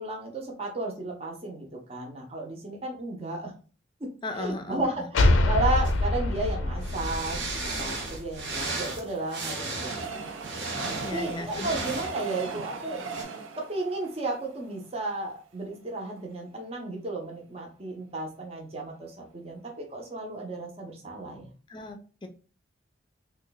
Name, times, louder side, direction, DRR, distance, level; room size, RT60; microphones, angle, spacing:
voice 1, 0.0-3.5 4.0-7.4 7.8-10.2 11.0-13.0 13.6-21.5, right 2 dB, 30° right, 0 dB, 0.6 m, -33 dB
voice 2, 4.2-5.1 11.0-11.7 21.7-22.3, left 2 dB, 25° left, 6 dB, 0.4 m, -36 dB
sound 1, 5.1-8.6, left 2 dB, 85° left, 0.5 m, -25 dB
sound 2, 5.8-6.0 6.8-12.2 13.1-13.2, right 2 dB, 70° right, 1.0 m, -35 dB
Train, 8.2-15.4 15.9-16.0 16.2-16.3, right 4 dB, 90° right, 0.5 m, -39 dB
3.1 x 2.2 x 3.9 m, 0.37 s
head